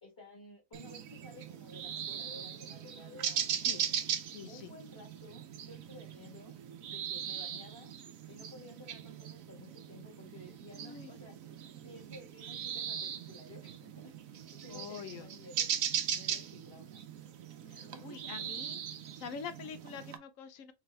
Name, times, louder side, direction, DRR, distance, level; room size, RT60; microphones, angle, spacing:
voice 1, 0.0-3.9 4.5-6.6 6.9-7.9 8.3-14.1 14.4-15.7 16.1-17.1 17.9-18.5, left 1 dB, 20° left, 1.3 m, -54 dB
sound 1, 0.7-20.2, right 8 dB, 85° right, 1.1 m, -39 dB
voice 2, 4.3-4.7 10.8-11.1 14.7-15.3 17.7-18.8 19.2-20.7, left 6 dB, 75° left, 1.1 m, -45 dB
3.4 x 3.3 x 3.2 m
omnidirectional pair, 1.4 m